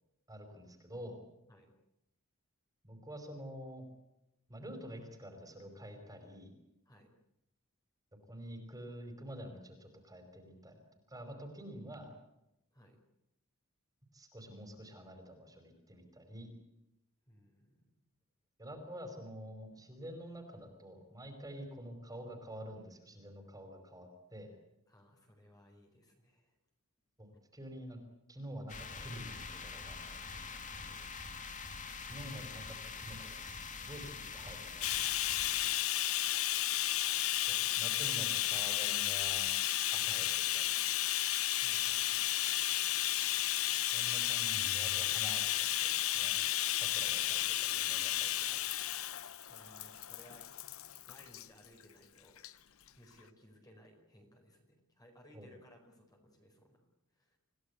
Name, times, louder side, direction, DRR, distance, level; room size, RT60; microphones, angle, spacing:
voice 1, 0.3-1.2 2.8-3.9 4.5-6.5 8.3-10.8 11.1-12.1 14.1-16.5 18.6-24.5 27.2-28.0 28.3-30.3 32.1-34.9 37.4-39.5 39.9-40.8 43.9-46.4 46.7-48.7 55.3-55.5, equal, 15° right, 5 dB, 5.3 m, -48 dB
voice 2, 6.8-7.2 12.7-13.0 17.3-17.8 24.9-26.6 30.8-31.0 35.6-35.9 41.6-42.3 49.5-50.7 51.1-52.4 53.0-56.8 57.1-57.4, equal, 15° left, 2 dB, 4.8 m, -61 dB
sound 1, 28.7-35.7, left 5 dB, 35° left, 2.4 m, -45 dB
Bathtub (filling or washing), 34.8-51.5 52.4-52.5 52.9-53.0, left 14 dB, 65° left, 1.0 m, -33 dB
sound 2, 44.5-46.7, left 1 dB, 75° right, 3.4 m, -54 dB
27.5 x 17.5 x 8.2 m, 0.86 s
head